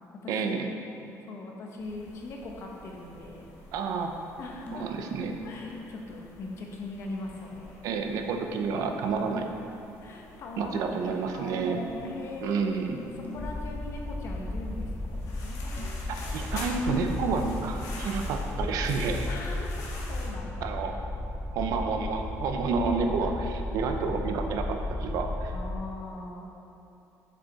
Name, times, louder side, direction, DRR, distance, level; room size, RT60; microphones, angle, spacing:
voice 1, 0.3-0.7 3.7-4.1 4.7-5.3 7.8-9.5 10.6-11.8 12.4-13.0 16.3-19.3 20.6-20.9 21.5-25.5, right 4 dB, 70° right, 4 dB, 0.7 m, -29 dB
voice 2, 1.2-3.4 4.4-4.9 5.4-7.8 10.0-12.7 13.1-15.8 16.0-16.7 19.2-19.7 20.1-20.7 23.1-23.3 25.5-26.5, left 2 dB, 50° left, 0 dB, 1.1 m, -41 dB
sound 1, 1.8-20.3, left 2 dB, 75° left, 1.6 m, -47 dB
sound 2, 4.7-6.1 8.5-9.7 11.5-13.7 15.8-16.0, left 2 dB, 25° left, 0.9 m, -44 dB
sound 3, 13.4-25.7, left 2 dB, 10° left, 0.5 m, -34 dB
7.2 x 6.8 x 4.1 m, 2.9 s
cardioid pair, 160°, 6 cm